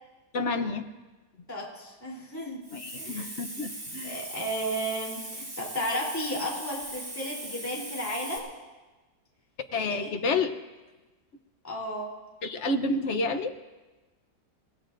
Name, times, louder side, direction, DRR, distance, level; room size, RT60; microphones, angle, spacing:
voice 1, 0.3-0.8 2.7-4.2 9.7-10.5 12.4-13.5, left 3 dB, 50° left, 8 dB, 1.0 m, -29 dB
voice 2, 1.5-2.6 3.0-3.3 4.0-8.5 9.9-10.1 11.6-12.1, equal, 10° left, -4 dB, 3.3 m, -33 dB
Hiss, 2.6-8.4, right 1 dB, 45° right, 4.0 m, -40 dB
29.5 x 17.0 x 2.6 m, 1.2 s
omnidirectional pair, 1.9 m